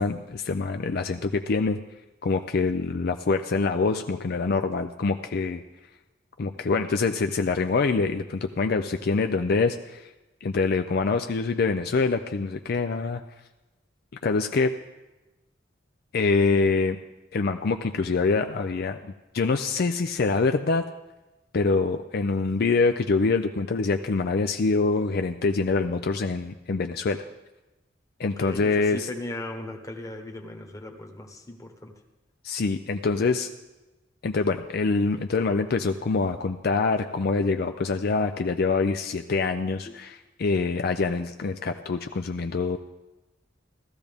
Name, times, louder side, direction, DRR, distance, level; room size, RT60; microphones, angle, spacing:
voice 1, 0.0-1.8 2.2-5.6 6.4-10.1 10.4-13.2 14.2-14.7 16.1-17.0 17.3-20.8 21.5-27.2 28.2-29.1 32.4-33.5 34.2-42.8, left 4 dB, 55° left, 6 dB, 0.5 m, -25 dB
voice 2, 28.2-31.9 39.9-40.0, left 1 dB, 20° left, 3 dB, 1.2 m, -38 dB
16.0 x 13.5 x 3.5 m, 1.1 s
head